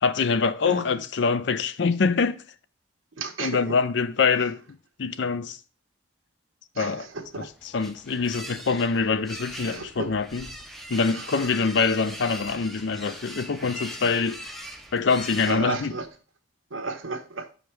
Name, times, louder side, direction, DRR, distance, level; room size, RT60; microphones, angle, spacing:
voice 1, 0.0-2.4 3.4-4.6 5.0-5.6 6.8-7.1 7.7-10.4 10.9-14.4 14.9-15.9, left 5 dB, 65° left, 0.5 m, -24 dB
voice 2, 0.6-1.0 3.2-3.8 4.3-4.5 6.7-7.5 9.6-10.2 10.9-11.6 12.5-12.6 15.5-16.1 16.7-17.5, right 3 dB, 90° right, 1.1 m, -34 dB
sound 1, 7.2-16.1, equal, ahead, 0.6 m, -41 dB
6.1 x 5.1 x 4.5 m
head